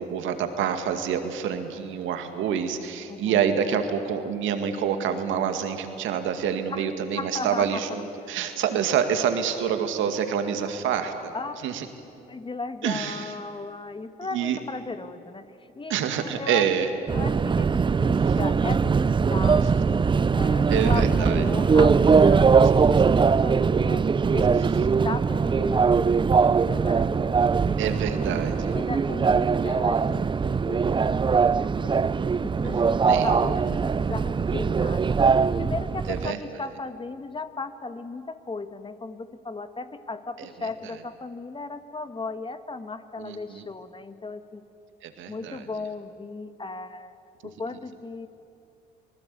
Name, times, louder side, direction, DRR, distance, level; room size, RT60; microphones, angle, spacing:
voice 1, 0.0-11.3 11.6-11.9 12.8-13.3 14.3-14.6 15.9-16.9 20.7-21.4 27.8-28.8 33.1-33.3 36.1-36.4 40.4-40.5 43.2-43.6 45.0-45.6, right 8 dB, 70° right, 7 dB, 2.2 m, -27 dB
voice 2, 3.1-3.5 6.7-6.9 7.1-7.8 11.3-11.6 12.3-16.7 17.1-28.2 28.7-32.1 32.4-35.2 35.6-44.6 45.3-47.2 47.4-48.3, left 3 dB, 25° left, 9 dB, 1.5 m, -36 dB
Subway metro underground, 17.1-36.3, right 5 dB, 25° right, 0.5 m, -21 dB
26.0 x 19.5 x 8.5 m, 2.7 s
hypercardioid pair, 60°, 21 cm